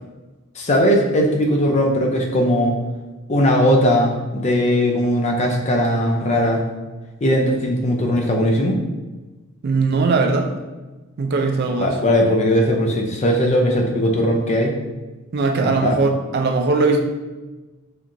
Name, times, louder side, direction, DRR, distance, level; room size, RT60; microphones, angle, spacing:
voice 1, 0.6-2.7 3.3-6.6 7.2-8.8 11.8-14.7 15.6-15.9, equal, 30° left, 1 dB, 0.4 m, -18 dB
voice 2, 9.6-10.5 11.2-12.0 15.3-17.0, right 3 dB, 50° right, 3 dB, 0.4 m, -19 dB
4.3 x 2.5 x 2.6 m, 1.2 s
head